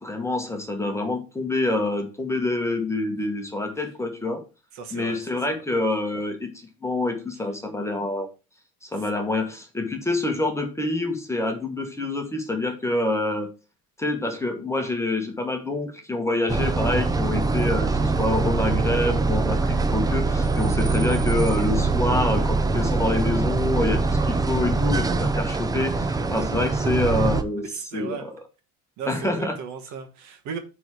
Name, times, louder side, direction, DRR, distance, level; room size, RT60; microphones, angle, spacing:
voice 1, 0.0-4.4 4.9-6.5 6.8-8.3 8.8-13.5 14.0-28.3 29.1-29.6, left 2 dB, 10° left, 1.2 m, -27 dB
voice 2, 4.7-5.2 5.5-5.6 27.7-28.2 29.0-30.6, right 6 dB, 55° right, 1.6 m, -35 dB
sound 1, 16.5-27.4, right 3 dB, 10° right, 0.5 m, -23 dB
9.1 x 3.7 x 4.8 m
cardioid pair, 125°, 34 cm